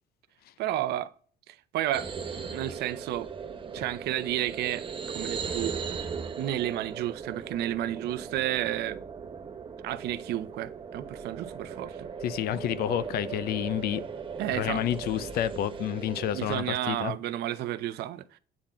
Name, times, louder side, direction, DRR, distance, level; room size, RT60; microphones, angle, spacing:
voice 1, 0.6-1.1 1.5-3.3 3.7-5.7 6.4-9.0 9.8-12.1 14.4-14.8 16.3-18.4, right 13 dB, 75° right, 0.6 m, -32 dB
sound 1, 1.9-16.6, right 6 dB, 30° right, 0.8 m, -38 dB
voice 2, 12.2-14.0 14.5-17.1, left 11 dB, 65° left, 0.5 m, -29 dB
8.7 x 3.8 x 4.3 m
cardioid pair, 110°, 17 cm